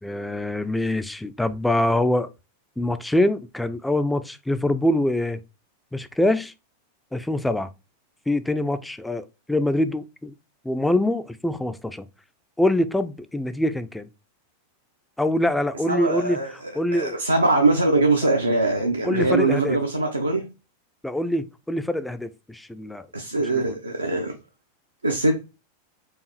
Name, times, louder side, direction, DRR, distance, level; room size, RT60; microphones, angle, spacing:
voice 1, 0.0-2.3 2.8-5.4 5.9-6.5 7.1-7.7 8.3-10.3 10.6-12.1 12.6-14.1 15.2-16.4 16.7-17.2 19.0-19.8 21.0-23.1 23.5-23.8, left 1 dB, 5° left, 0.3 m, -24 dB
voice 2, 15.9-20.5 23.1-24.3 25.0-25.4, right 2 dB, 80° right, 0.5 m, -22 dB
4.7 x 2.6 x 3.0 m
figure-of-eight pair, 90°, 0 cm